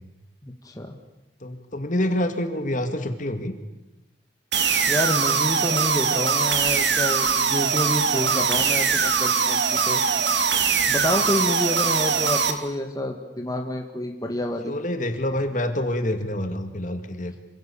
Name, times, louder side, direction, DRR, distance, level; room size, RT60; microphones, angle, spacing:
voice 1, 0.4-0.9 4.9-10.0 10.9-14.7, left 1 dB, 20° left, 3 dB, 1.9 m, -28 dB
voice 2, 1.4-3.5 14.7-17.4, left 1 dB, 45° left, 8 dB, 2.4 m, -27 dB
sound 1, 4.5-12.5, right 6 dB, 70° right, 2.8 m, -22 dB
27.5 x 25.5 x 7.2 m, 0.97 s
head